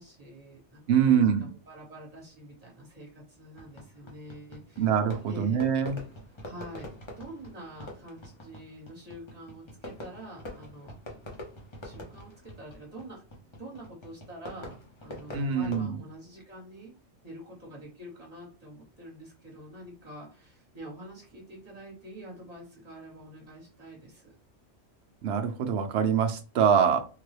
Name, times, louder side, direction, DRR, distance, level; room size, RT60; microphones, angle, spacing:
voice 1, 0.0-1.2 1.7-4.8 5.3-5.6 6.4-6.9 7.2-10.9 11.8-13.2 13.6-14.8 15.0-16.9 17.2-24.3, right 1 dB, 35° right, -3 dB, 1.3 m, -46 dB
voice 2, 0.9-1.5 4.8-6.0 15.3-16.0 25.2-27.0, right 7 dB, 70° right, 5 dB, 0.9 m, -24 dB
Fireworks, 3.6-15.9, left 1 dB, 30° left, 0.7 m, -45 dB
3.7 x 2.2 x 3.2 m, 0.36 s
omnidirectional pair, 1.2 m